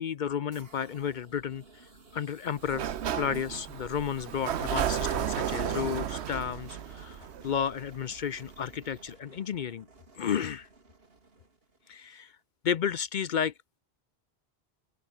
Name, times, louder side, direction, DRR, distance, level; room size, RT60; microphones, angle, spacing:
voice 1, 0.0-2.9 3.1-9.9 10.2-10.7 11.9-12.4 12.6-13.5, left 8 dB, 55° left, 0.6 m, -32 dB
sound 1, 0.5-12.3, right 3 dB, 60° right, 2.8 m, -56 dB
Sliding door, 2.6-8.3, right 9 dB, 80° right, 1.1 m, -33 dB
open air
omnidirectional pair, 1.1 m